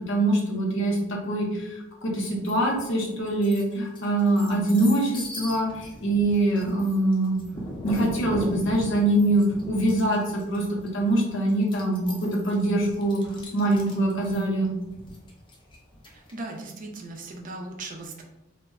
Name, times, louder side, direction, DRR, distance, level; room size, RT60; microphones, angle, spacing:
voice 1, 0.1-7.4 7.8-13.2 13.5-14.7, right 1 dB, 65° left, -1 dB, 0.7 m, -24 dB
sound 1, 2.5-2.9 3.3-16.5, left 1 dB, 25° left, 0.5 m, -39 dB
voice 2, 16.1-18.2, right 2 dB, 40° right, 1 dB, 0.4 m, -38 dB
2.1 x 2.0 x 3.5 m, 0.92 s
head